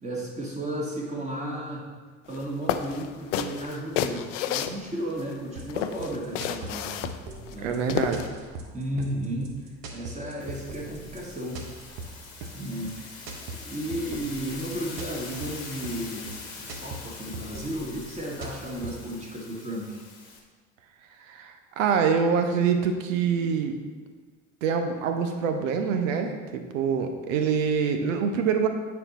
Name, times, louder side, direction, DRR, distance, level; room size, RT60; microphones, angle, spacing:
voice 1, 0.0-1.9 2.3-6.9 7.5-7.8 8.7-9.6 9.9-11.6 12.5-13.3 13.6-20.0, right 1 dB, 15° right, -3 dB, 2.0 m, -34 dB
sound 1, 2.3-2.4 2.7-5.3 5.7-8.3, left 10 dB, 65° left, 0.6 m, -30 dB
sound 2, 5.6-19.1, right 3 dB, 55° right, 1.2 m, -41 dB
voice 2, 7.6-8.3 21.3-23.8 24.6-28.7, right 6 dB, 70° right, 6 dB, 0.9 m, -25 dB
sound 3, 10.4-20.4, left 4 dB, 80° left, 1.3 m, -43 dB
8.8 x 4.7 x 4.1 m, 1.5 s
figure-of-eight pair, 65°, 40 cm